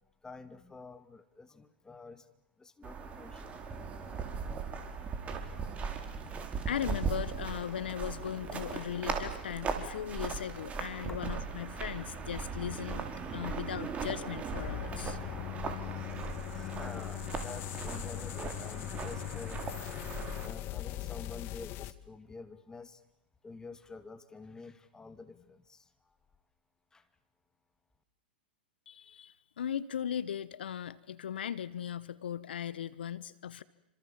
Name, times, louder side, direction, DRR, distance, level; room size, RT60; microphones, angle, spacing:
voice 1, 0.2-2.3 2.6-3.5 4.7-5.5 6.2-6.7 10.0-10.1 11.0-11.2 13.3-14.0 16.5-19.7 20.4-23.0 23.4-26.1 26.9-27.1, left 3 dB, 10° left, 10 dB, 2.4 m, -49 dB
sound 1, 2.8-20.5, right 5 dB, 25° right, 4.3 m, -39 dB
voice 2, 6.7-15.2 28.9-33.6, left 9 dB, 75° left, 19 dB, 1.1 m, -38 dB
sound 2, 14.5-21.9, left 15 dB, 40° left, 1.4 m, -40 dB
28.5 x 26.5 x 7.4 m, 0.84 s
hypercardioid pair, 105°, 6 cm